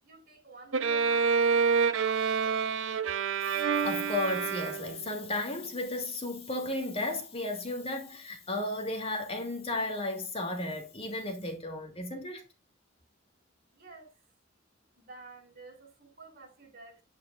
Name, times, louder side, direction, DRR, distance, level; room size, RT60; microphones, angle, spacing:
voice 1, 0.0-3.0 13.6-14.2 15.0-17.0, right 3 dB, 50° right, 5.3 m, -51 dB
Bowed string instrument, 0.7-5.2, right 6 dB, 80° right, 0.9 m, -27 dB
voice 2, 3.4-12.4, left 2 dB, 30° left, 2.6 m, -34 dB
11.0 x 9.4 x 2.5 m
head